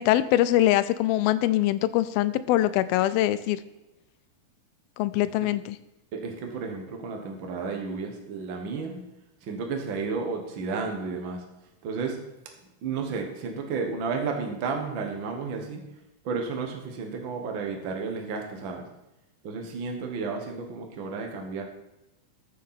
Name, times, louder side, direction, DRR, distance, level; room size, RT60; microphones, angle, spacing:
voice 1, 0.0-3.6 5.0-5.8, left 14 dB, 90° left, 14 dB, 2.5 m, -23 dB
voice 2, 6.1-9.0 9.4-11.4 11.8-12.2 12.8-15.8 16.2-18.8 19.4-21.6, right 4 dB, 65° right, 3 dB, 1.2 m, -32 dB
14.0 x 6.5 x 5.8 m, 0.93 s
omnidirectional pair, 4.2 m